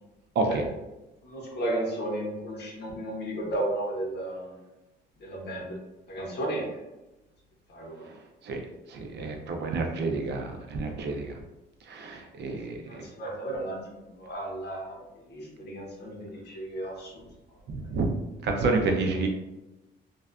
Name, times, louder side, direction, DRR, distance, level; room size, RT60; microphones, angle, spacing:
voice 1, 1.2-4.6 5.2-5.8 6.1-6.8 7.7-8.1 12.5-17.3 17.8-17.9 19.1-19.3, right 1 dB, 55° left, -2 dB, 0.8 m, -34 dB
voice 2, 8.9-11.4 11.9-12.8 17.7-18.1 18.4-19.3, right 3 dB, 60° right, 3 dB, 0.5 m, -29 dB
2.5 x 2.3 x 2.2 m, 1.0 s
cardioid pair, 90°, 20 cm